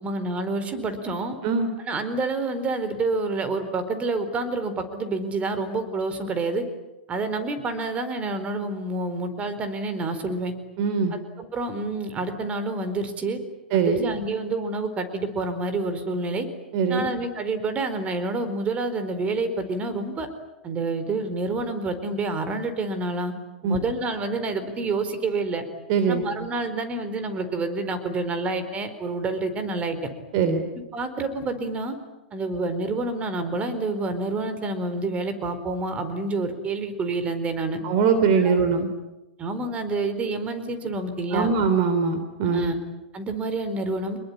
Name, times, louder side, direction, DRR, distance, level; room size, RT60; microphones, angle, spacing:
voice 1, 0.0-1.3 1.8-6.6 7.1-10.5 11.4-13.4 13.7-16.5 16.9-20.3 20.6-23.3 23.6-25.6 26.1-30.0 30.9-31.9 32.3-37.8 38.4-38.6 39.4-41.5 42.5-42.8 43.1-44.2, right 3 dB, 25° right, 10 dB, 4.5 m, -28 dB
voice 2, 10.8-11.1 13.7-14.0 16.7-17.0 23.6-23.8 25.9-26.2 30.3-30.6 37.8-38.9 41.3-42.7, right 5 dB, 45° right, 8 dB, 3.3 m, -22 dB
27.0 x 22.0 x 9.9 m, 1.0 s
hypercardioid pair, 110°, 6 cm